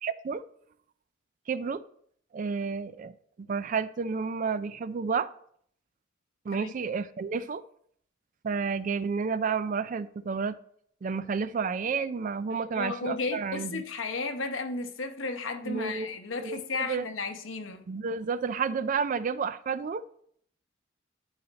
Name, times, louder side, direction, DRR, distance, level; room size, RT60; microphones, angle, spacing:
voice 1, 0.0-0.4 1.5-1.8 2.3-3.1 3.4-5.3 6.5-7.6 8.4-10.6 11.0-13.8 15.6-16.1 16.4-17.1 17.9-20.0, right 5 dB, 40° right, 0.3 m, -31 dB
voice 2, 12.5-17.9, left 3 dB, 80° left, 0.9 m, -34 dB
11.0 x 4.1 x 4.1 m
head